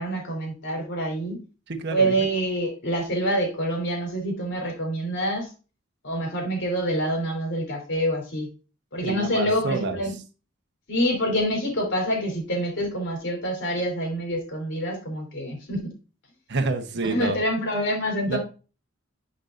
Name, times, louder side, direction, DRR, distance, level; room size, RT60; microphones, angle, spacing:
voice 1, 0.0-1.4 1.9-5.5 6.0-8.5 8.9-10.1 10.9-15.8 17.0-18.4, equal, 60° left, 2 dB, 3.5 m, -26 dB
voice 2, 1.7-2.1 9.1-10.0 16.5-17.4 18.3-18.4, right 3 dB, 60° right, 5 dB, 1.1 m, -28 dB
11.0 x 5.3 x 2.6 m, 0.33 s
head